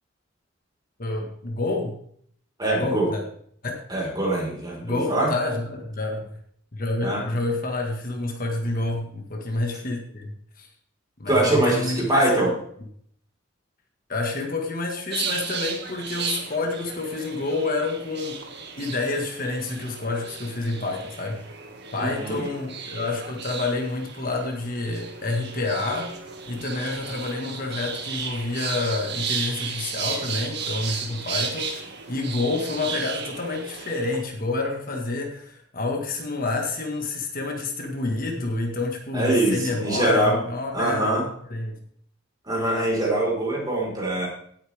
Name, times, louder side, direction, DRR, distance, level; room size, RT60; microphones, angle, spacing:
voice 1, 1.0-1.9 2.7-3.2 3.6-3.8 4.8-6.3 6.7-10.7 11.2-12.4 14.1-18.4 18.8-21.4 21.9-26.2 26.5-41.1 41.5-41.8, left 2 dB, 45° left, 2 dB, 1.8 m, -28 dB
voice 2, 2.6-3.1 3.9-5.3 7.0-7.5 11.3-12.5 22.0-22.4 39.1-40.4 40.7-41.2 42.5-44.3, right 1 dB, 20° right, -3 dB, 4.6 m, -23 dB
sound 1, 15.1-34.2, right 5 dB, 55° right, 2.0 m, -34 dB
17.5 x 8.8 x 3.5 m, 0.64 s
head